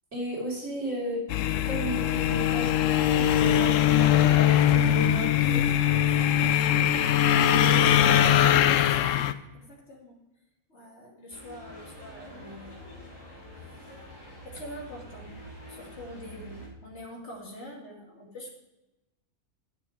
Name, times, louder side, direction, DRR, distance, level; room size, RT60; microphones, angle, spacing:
voice 1, 0.1-1.2 1.6-5.6 6.3-6.9 7.3-8.5, equal, 70° right, -5 dB, 4.1 m, -34 dB
sound 1, 1.3-9.3, left 11 dB, 80° left, 0.9 m, -22 dB
voice 2, 5.9-6.6 9.3-10.2 10.7-13.2 13.6-13.9 14.4-15.4 15.7-18.5, equal, 60° left, -2 dB, 2.7 m, -45 dB
sound 2, 11.3-16.7, equal, 20° left, 3.6 m, -46 dB
11.5 x 6.7 x 4.9 m, 1.0 s
omnidirectional pair, 1.3 m